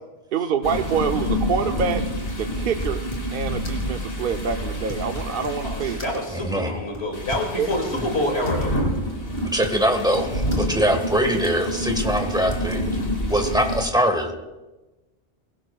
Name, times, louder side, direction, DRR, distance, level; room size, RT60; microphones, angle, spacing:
voice 1, 0.3-2.0 2.4-3.0 3.3-6.2 7.6-7.7, right 6 dB, 60° right, 5 dB, 0.8 m, -26 dB
sound 1, 0.6-6.6 7.1-13.8, equal, 60° left, 2.3 m, -28 dB
sound 2, 2.5-3.4 3.6-3.9 4.5-5.7 6.0-6.4 6.9-8.7 9.0-9.1 9.4-10.7 11.4-11.7 12.0-12.2 12.5-12.8, equal, 25° left, 2.6 m, -40 dB
voice 2, 5.6-8.7, left 1 dB, 75° left, 0 dB, 2.8 m, -27 dB
voice 3, 6.3-6.7 9.5-12.8 13.3-14.3, equal, 5° right, 4 dB, 1.6 m, -22 dB
22.5 x 16.5 x 2.4 m, 1.1 s
omnidirectional pair, 1.1 m